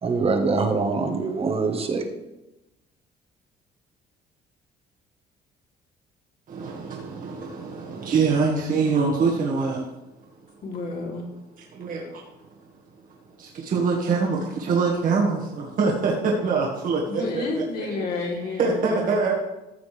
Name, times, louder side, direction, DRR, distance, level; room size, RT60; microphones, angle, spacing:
voice 1, 0.0-2.0, right 4 dB, 35° right, 5 dB, 1.4 m, -24 dB
voice 2, 6.5-9.9 11.7-12.2 13.4-17.4 17.9-18.0 18.6-19.3, right 4 dB, 55° right, -2 dB, 1.8 m, -24 dB
voice 3, 10.6-11.3 17.1-19.2, left 3 dB, 60° left, -3 dB, 3.3 m, -30 dB
14.0 x 7.1 x 3.4 m, 0.98 s
cardioid pair, 110°, 17 cm